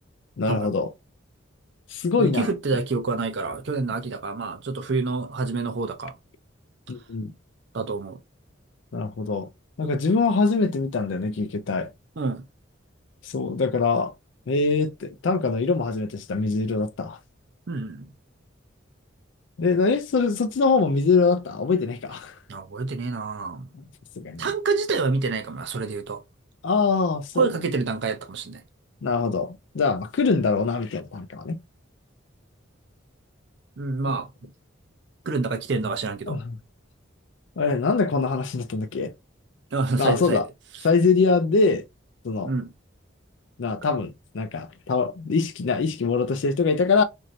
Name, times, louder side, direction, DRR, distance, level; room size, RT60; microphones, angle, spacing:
voice 1, 0.4-0.9 1.9-2.5 6.9-7.3 8.9-9.5 9.8-11.9 13.2-14.1 14.5-17.2 19.6-22.3 24.2-24.5 26.6-27.5 29.0-31.6 36.3-36.5 37.6-39.1 40.0-40.4 40.8-41.8 42.2-42.5 43.6-47.0, left 4 dB, 65° left, 0.4 m, -23 dB
voice 2, 2.2-6.1 7.7-8.2 9.8-9.9 12.2-12.4 17.7-18.1 22.5-23.7 24.4-26.2 27.3-28.6 33.8-34.3 35.3-36.4 39.7-40.4 42.4-42.7, right 4 dB, 60° right, 0.5 m, -27 dB
3.1 x 2.6 x 2.6 m
head